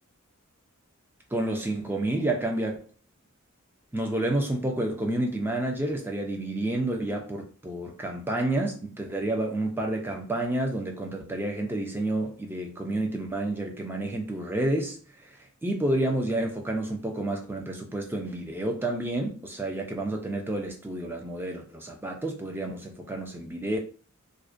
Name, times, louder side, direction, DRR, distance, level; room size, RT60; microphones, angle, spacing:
voice 1, 1.3-2.8 3.9-15.4 15.6-23.8, right 1 dB, 10° right, 0.4 m, -29 dB
2.4 x 2.1 x 2.4 m
head